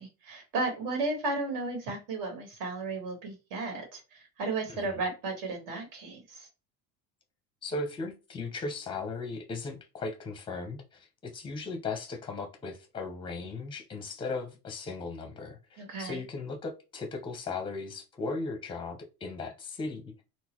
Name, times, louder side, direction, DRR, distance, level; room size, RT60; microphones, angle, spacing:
voice 1, 0.0-6.5 15.8-16.2, right 3 dB, 60° right, 1.7 m, -34 dB
voice 2, 7.6-20.2, left 3 dB, 15° left, 0.6 m, -37 dB
3.7 x 2.2 x 3.0 m
cardioid pair, 160°, 36 cm